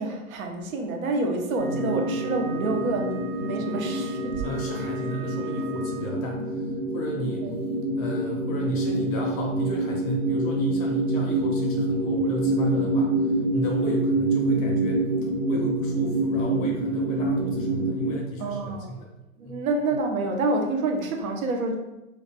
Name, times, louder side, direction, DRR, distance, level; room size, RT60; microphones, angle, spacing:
voice 1, 0.0-4.4 7.4-7.5 18.4-18.9 19.4-21.7, right 2 dB, 75° right, 4 dB, 0.8 m, -28 dB
Wind instrument woodwind instrument, 1.5-6.2, right 9 dB, 10° right, 0.7 m, -43 dB
sound 1, 1.6-18.2, right 1 dB, 45° right, 1.0 m, -26 dB
voice 2, 4.4-7.5 8.0-19.1 19.4-19.7, equal, 25° left, -1 dB, 0.5 m, -34 dB
5.0 x 2.5 x 2.2 m, 0.94 s
hypercardioid pair, 145°, 42 cm